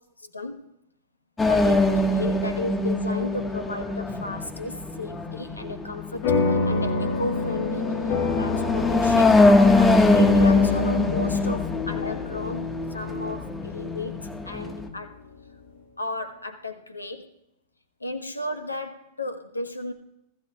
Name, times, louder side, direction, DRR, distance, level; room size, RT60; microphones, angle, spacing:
voice 1, 0.3-0.7 1.4-7.9 8.3-9.4 9.7-15.2 16.0-17.3 18.0-19.9, left 2 dB, 80° left, 9 dB, 1.1 m, -34 dB
sound 1, 1.4-14.9, left 2 dB, 15° left, 1.4 m, -23 dB
sound 2, 6.2-15.0, left 4 dB, 50° left, 1.5 m, -28 dB
19.5 x 14.5 x 2.3 m, 0.86 s
figure-of-eight pair, 90°, 0 cm